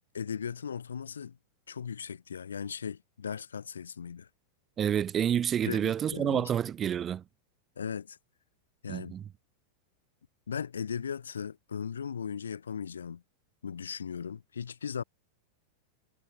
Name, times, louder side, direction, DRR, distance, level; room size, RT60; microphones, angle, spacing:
voice 1, 0.1-1.4 1.7-4.3 5.6-6.5 7.8-8.2 8.8-9.1 10.5-13.2 13.6-15.0, left 7 dB, 70° left, 5.2 m, -37 dB
voice 2, 4.8-7.2 8.9-9.3, right 9 dB, 25° right, 5.5 m, -29 dB
figure-of-eight pair, 90°, 0 cm